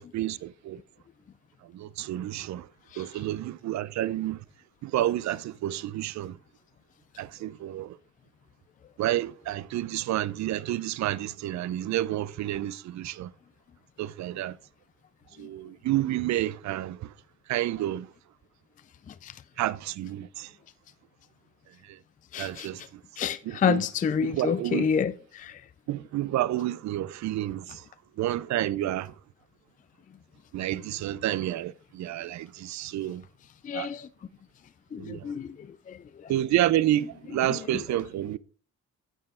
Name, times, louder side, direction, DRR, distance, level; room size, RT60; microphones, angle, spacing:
voice 1, 0.1-0.8 1.7-2.7 3.0-4.4 4.8-6.4 7.2-8.0 9.0-13.3 14.0-14.6 15.4-17.1 17.5-18.1 19.6-20.5 21.9-22.0 22.4-22.8 23.5-23.8 24.2-24.9 25.9-27.8 28.2-29.1 30.5-33.2 33.7-33.9 35.0-35.3 36.3-38.4, right 13 dB, 65° right, 0.5 m, -29 dB
voice 2, 22.3-22.9 23.2-25.6 33.6-34.1 34.9-36.3 37.5-37.7, left 7 dB, 25° left, 0.4 m, -29 dB
9.0 x 6.8 x 3.6 m
cardioid pair, 90°, 30 cm